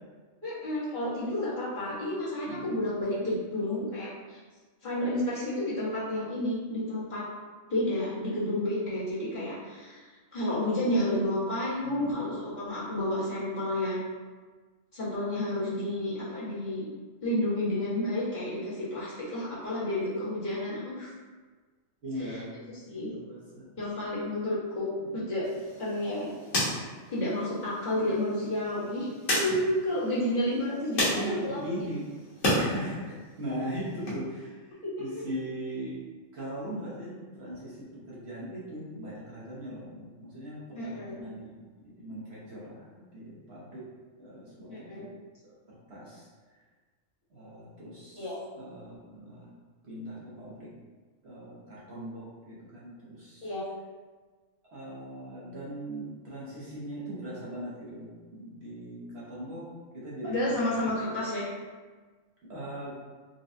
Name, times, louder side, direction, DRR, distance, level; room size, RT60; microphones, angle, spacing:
voice 1, 0.4-4.4 4.8-7.3 7.7-10.0 10.3-14.0 14.9-16.9 17.2-21.1 22.2-22.4 22.9-23.1 23.8-25.4 25.8-26.3 27.1-31.6 34.8-35.2 40.7-41.2 44.7-45.1 48.1-48.4 53.4-53.6 60.2-61.5, left 1 dB, 35° left, -12 dB, 1.3 m, -31 dB
voice 2, 2.5-3.0 11.8-12.3 22.0-22.6 22.9-23.7 25.0-25.2 31.0-32.1 32.5-36.0 36.3-41.5 41.8-43.8 44.2-45.0 45.7-46.3 47.3-49.5 49.8-50.7 51.2-53.5 54.7-59.7 59.9-60.8 62.5-62.9, equal, 60° right, -8 dB, 1.1 m, -39 dB
sound 1, 25.4-32.6 33.0-34.1, left 1 dB, 75° left, 1.4 m, -33 dB
4.0 x 2.2 x 2.5 m, 1.4 s
omnidirectional pair, 1.3 m